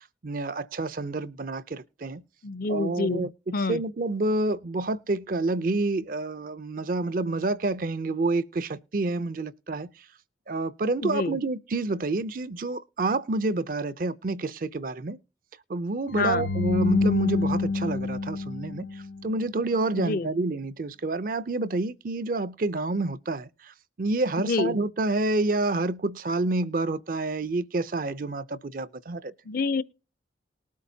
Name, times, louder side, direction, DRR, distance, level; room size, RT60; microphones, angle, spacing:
voice 1, 0.2-2.2 2.7-9.9 10.5-15.2 15.7-29.3, right 2 dB, 50° right, 0.5 m, -28 dB
voice 2, 2.4-3.3 3.5-3.8 11.0-11.4 16.1-16.5 19.9-20.3 24.4-24.8 29.5-29.8, left 3 dB, 50° left, 0.5 m, -27 dB
sound 1, 16.1-19.3, left 3 dB, 90° left, 0.8 m, -26 dB
19.5 x 8.4 x 2.7 m
head